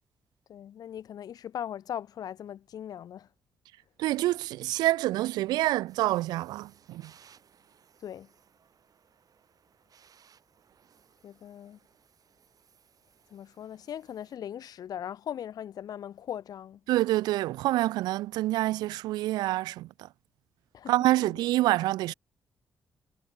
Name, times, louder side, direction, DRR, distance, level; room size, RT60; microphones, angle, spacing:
voice 1, 0.5-3.3 8.0-8.3 11.2-11.8 13.3-16.8 20.7-20.9 21.2-21.3, left 10 dB, 70° left, 1.1 m, -39 dB
voice 2, 4.0-7.1 16.9-20.1 20.9-22.1, right 16 dB, 80° right, 0.5 m, -27 dB
sound 1, 5.9-14.4, right 7 dB, 60° right, 5.2 m, -62 dB
hypercardioid pair, 45°, 7 cm